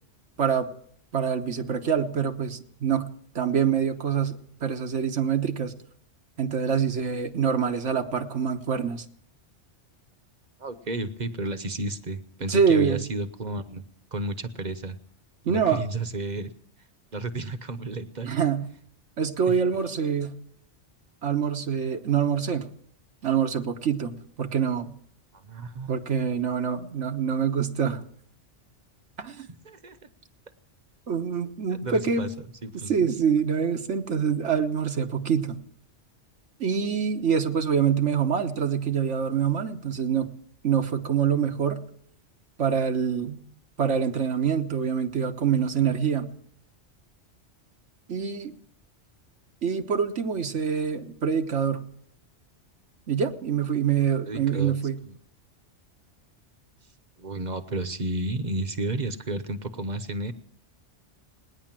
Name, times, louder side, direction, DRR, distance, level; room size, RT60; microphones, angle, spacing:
voice 1, 0.4-0.7 1.1-3.1 3.3-5.7 6.4-9.0 12.5-13.0 15.4-15.8 18.2-18.7 19.2-20.4 21.2-22.7 23.2-24.9 25.9-28.0 29.2-29.5 31.1-32.3 32.9-35.6 36.6-40.3 40.6-41.8 42.6-43.4 43.8-46.3 48.1-48.5 49.6-51.9 53.1-55.0, right 7 dB, 80° right, 6 dB, 1.5 m, -25 dB
voice 2, 10.6-13.8 14.1-15.0 15.4-16.5 17.1-18.3 25.3-26.1 29.6-30.1 31.7-32.3 32.6-32.9 54.3-54.7 55.0-55.2 57.2-60.3, right 2 dB, 40° right, 12 dB, 1.1 m, -32 dB
19.0 x 10.0 x 7.5 m, 0.63 s
omnidirectional pair, 1.2 m